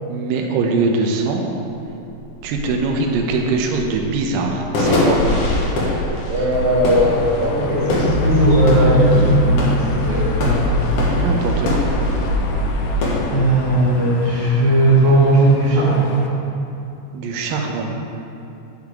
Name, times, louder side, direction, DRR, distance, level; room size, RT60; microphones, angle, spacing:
voice 1, 0.1-1.4 2.4-5.2 11.1-11.9 17.1-17.9, right 3 dB, 80° right, 1 dB, 2.4 m, -22 dB
sound 1, 1.8-13.3, left 2 dB, 60° left, 1.6 m, -24 dB
voice 2, 6.3-11.0 13.3-16.1, right 1 dB, 60° right, -7 dB, 2.8 m, -17 dB
sound 2, 6.5-16.3, left 3 dB, 80° left, 2.4 m, -32 dB
sound 3, 7.9-9.6 9.8-13.0, equal, 45° left, 1.9 m, -21 dB
11.0 x 6.6 x 3.6 m, 2.7 s
omnidirectional pair, 4.1 m